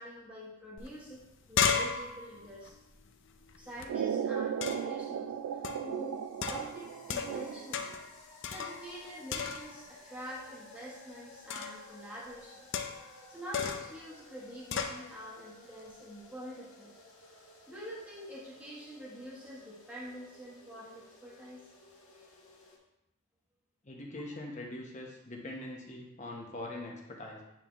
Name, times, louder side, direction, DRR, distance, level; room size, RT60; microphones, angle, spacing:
voice 1, 0.0-2.7 3.6-7.9 8.5-12.7 13.3-21.7 22.1-22.3, equal, 5° right, -7 dB, 1.0 m, -46 dB
sound 1, 0.8-0.9 1.2-3.9 4.6-5.0 5.6-5.9 6.4-7.5 7.7-8.1 8.4-9.0 9.3-9.9 11.5-11.9 12.7-13.2 13.5-14.0 14.7-15.0, left 6 dB, 55° left, 0.5 m, -34 dB
sound 2, 3.9-7.9, right 8 dB, 85° right, 0.3 m, -36 dB
sound 3, 5.1-22.8, left 2 dB, 80° left, 1.5 m, -56 dB
voice 2, 23.8-27.4, left 1 dB, 35° left, -1 dB, 0.9 m, -42 dB
9.0 x 3.8 x 3.0 m, 0.89 s
head